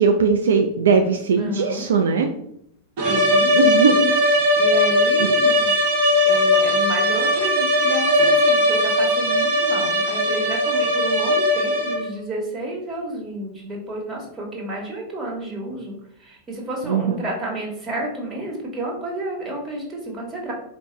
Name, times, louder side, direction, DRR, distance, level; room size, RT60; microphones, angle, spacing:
voice 1, 0.0-2.3 3.5-4.1 16.9-17.2, right 5 dB, 65° right, 4 dB, 0.3 m, -19 dB
voice 2, 1.4-1.8 3.0-3.5 4.6-5.7 6.2-15.9 16.2-20.5, right 1 dB, 20° right, -2 dB, 1.3 m, -31 dB
sound 1, 3.0-12.2, left 1 dB, 45° right, 1.0 m, -19 dB
4.5 x 2.1 x 3.8 m, 0.73 s
figure-of-eight pair, 90°, 0 cm